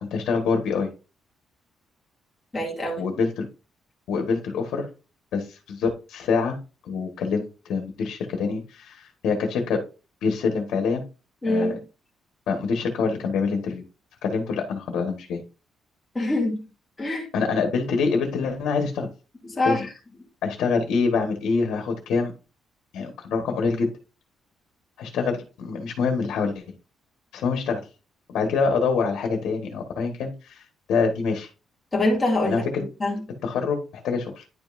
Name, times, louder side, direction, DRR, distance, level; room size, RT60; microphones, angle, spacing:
voice 1, 0.0-0.9 3.0-3.5 4.1-4.9 5.3-6.6 6.8-9.8 10.2-11.0 11.5-11.8 12.5-13.8 14.2-15.4 17.3-19.1 19.6-19.8 20.4-22.3 22.9-23.9 25.0-26.6 27.3-27.8 28.3-31.5 32.4-32.8 33.4-34.5, left 5 dB, 80° left, 4 dB, 1.5 m, -25 dB
voice 2, 2.5-3.1 11.4-11.8 16.1-16.6 17.0-17.3 19.4-19.8 31.9-32.6 33.0-33.2, left 2 dB, 15° left, -3 dB, 2.5 m, -24 dB
10.5 x 5.4 x 2.6 m, 0.32 s
cardioid pair, 155°, 0 cm